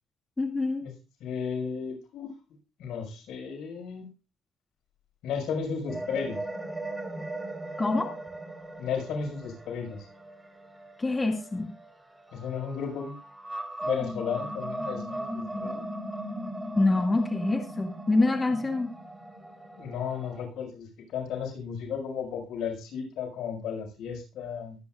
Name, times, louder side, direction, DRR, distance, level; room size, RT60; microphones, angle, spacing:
voice 1, 0.4-0.9 7.8-8.1 11.0-11.7 16.8-18.9, left 2 dB, 20° left, 2 dB, 2.4 m, -26 dB
voice 2, 1.2-2.3 2.8-4.1 5.2-6.4 8.8-10.0 12.3-13.2 13.8-15.8 19.8-24.8, left 6 dB, 85° left, 2 dB, 6.0 m, -34 dB
sound 1, 5.9-11.9 12.4-20.4, right 1 dB, 10° right, 4.1 m, -38 dB
23.0 x 9.8 x 2.5 m, 0.32 s
cardioid pair, 115°, 0 cm